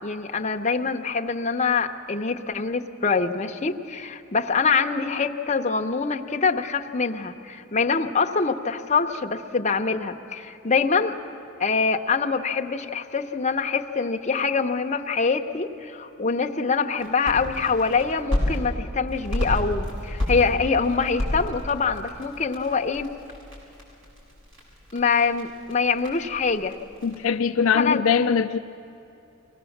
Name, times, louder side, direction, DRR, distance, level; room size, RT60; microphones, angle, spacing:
voice 1, 0.0-11.2 11.6-23.1 24.9-26.7 27.7-28.0, left 5 dB, 30° left, 4 dB, 0.7 m, -24 dB
sound 1, 17.0-18.6 19.1-27.1, left 1 dB, 65° right, 6.7 m, -32 dB
voice 2, 27.0-28.6, left 6 dB, 70° left, 7 dB, 0.4 m, -21 dB
23.5 x 17.5 x 7.2 m, 2.8 s
head